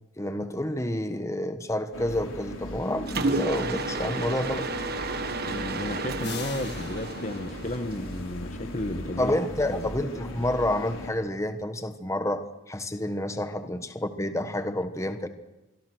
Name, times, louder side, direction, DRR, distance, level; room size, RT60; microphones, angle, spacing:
voice 1, 0.2-4.7 9.2-15.3, left 1 dB, 15° left, 9 dB, 1.2 m, -29 dB
sound 1, 1.9-11.1, left 1 dB, 70° left, 5.2 m, -38 dB
Mechanisms, 3.1-8.2, right 3 dB, 50° right, 1.4 m, -32 dB
voice 2, 5.5-9.3 9.7-9.9, left 1 dB, 35° left, 9 dB, 1.1 m, -33 dB
sound 2, 6.2-9.0, left 6 dB, 50° left, 1.5 m, -43 dB
25.5 x 23.0 x 6.3 m, 1.0 s
head